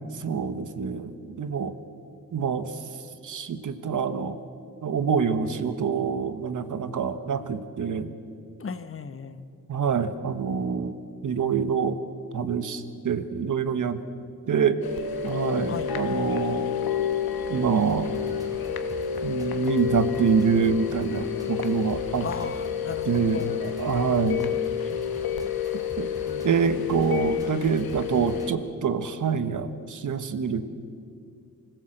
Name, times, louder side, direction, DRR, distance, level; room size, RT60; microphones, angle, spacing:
voice 1, 0.1-1.7 2.3-2.8 3.2-4.4 4.8-8.1 9.7-12.0 12.3-14.0 14.5-14.8 15.2-16.7 17.5-18.1 19.2-22.3 23.1-24.5 25.7-26.1 26.4-30.7, right 6 dB, 60° right, 11 dB, 1.3 m, -26 dB
voice 2, 8.6-9.5 15.7-15.9 22.2-23.7 26.2-26.7, left 6 dB, 40° left, 12 dB, 1.0 m, -36 dB
sound 1, 14.8-28.5, left 8 dB, 90° left, 1.4 m, -30 dB
sound 2, 17.8-28.5, right 1 dB, 10° right, 2.1 m, -45 dB
25.0 x 16.0 x 7.9 m, 2.5 s
wide cardioid pair, 110°, 35 cm